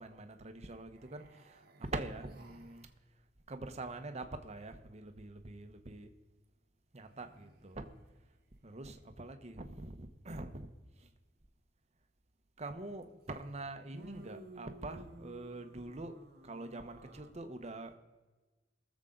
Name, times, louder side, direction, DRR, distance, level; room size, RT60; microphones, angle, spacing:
voice 1, 0.0-1.6 1.9-2.9 3.5-6.1 6.9-7.8 8.6-10.7 11.0-11.1 12.6-16.2 16.4-18.0, right 2 dB, 35° right, 1.0 m, -44 dB
sound 1, 1.0-2.9 7.0-8.0 13.0-13.1 13.9-17.3, right 2 dB, 60° right, 1.3 m, -55 dB
21.0 x 7.3 x 3.8 m
head